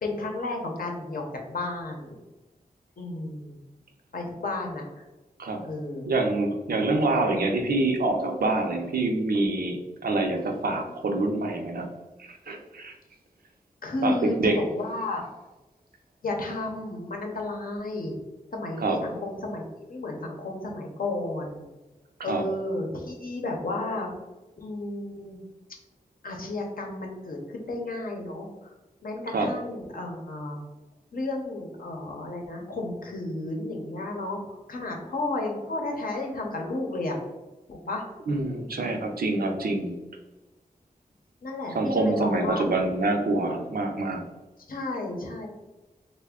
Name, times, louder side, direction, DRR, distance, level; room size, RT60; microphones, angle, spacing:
voice 1, 0.0-1.2 1.5-2.2 3.0-3.6 4.1-5.0 5.6-6.1 13.8-14.4 14.7-15.2 16.2-18.1 18.5-21.7 22.2-24.1 24.6-25.4 26.2-28.5 29.0-30.6 31.1-37.2 37.7-38.0 38.7-39.0 41.4-42.6 44.7-45.5, left 2 dB, 75° left, 1 dB, 0.7 m, -32 dB
voice 2, 6.1-9.8 10.0-11.9 12.3-12.9 14.0-14.6 18.8-19.0 22.2-22.4 29.3-29.5 38.3-40.0 41.7-44.3, right 2 dB, 85° right, 3 dB, 0.5 m, -26 dB
3.3 x 2.2 x 3.6 m, 1.1 s
wide cardioid pair, 100°, 15 cm